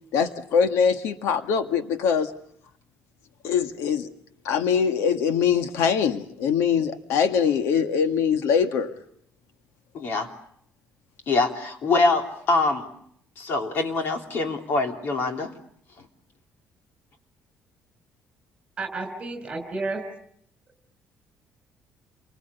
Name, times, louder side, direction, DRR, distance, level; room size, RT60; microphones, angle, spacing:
voice 1, 0.1-2.3 3.4-4.1 4.4-8.9, left 7 dB, 85° left, 1.8 m, -23 dB
voice 2, 9.9-10.3 11.3-12.9 13.4-15.5, left 3 dB, 50° left, 3.3 m, -24 dB
voice 3, 18.8-20.0, right 3 dB, 25° right, 5.2 m, -31 dB
29.0 x 24.5 x 7.0 m
cardioid pair, 170°, 5 cm